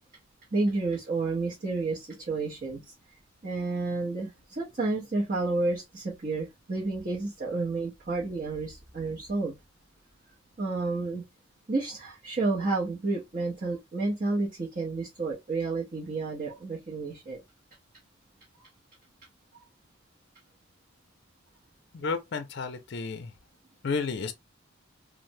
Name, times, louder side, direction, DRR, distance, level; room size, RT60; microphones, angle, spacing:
voice 1, 0.5-2.9 3.4-9.5 10.6-11.2 11.7-17.4, right 3 dB, 40° right, 0.7 m, -30 dB
voice 2, 21.9-23.3 23.8-24.3, left 4 dB, 55° left, 0.5 m, -32 dB
3.2 x 2.0 x 2.7 m
head